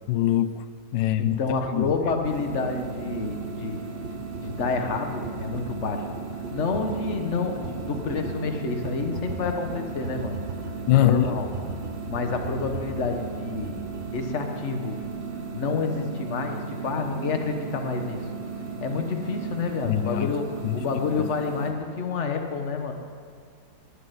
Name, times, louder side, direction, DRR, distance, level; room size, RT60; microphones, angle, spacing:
voice 1, 0.1-0.6 0.9-1.4 1.7-1.9 10.9-11.3 19.9-20.3 20.6-20.8, left 13 dB, 90° left, 13 dB, 1.3 m, -22 dB
voice 2, 1.2-3.8 4.4-6.1 6.5-11.5 12.1-13.9 14.1-15.0 15.5-18.2 18.8-22.9, left 4 dB, 40° left, 4 dB, 1.5 m, -29 dB
sound 1, 1.6-14.1, right 3 dB, 40° right, 1.1 m, -39 dB
sound 2, 2.2-21.7, right 5 dB, 85° right, 2.0 m, -36 dB
19.5 x 6.8 x 9.3 m, 2.1 s
omnidirectional pair, 2.0 m